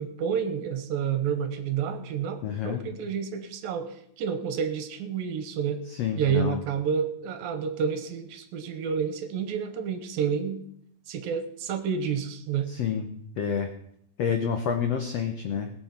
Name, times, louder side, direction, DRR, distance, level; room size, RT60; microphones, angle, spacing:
voice 1, 0.0-5.8 6.2-10.7 11.1-12.7, right 7 dB, 75° right, 9 dB, 2.8 m, -29 dB
voice 2, 2.4-2.8 5.9-6.6 12.7-13.1 13.4-13.7 14.2-15.7, left 7 dB, 85° left, 5 dB, 1.4 m, -28 dB
20.5 x 7.1 x 5.9 m, 0.70 s
omnidirectional pair, 4.4 m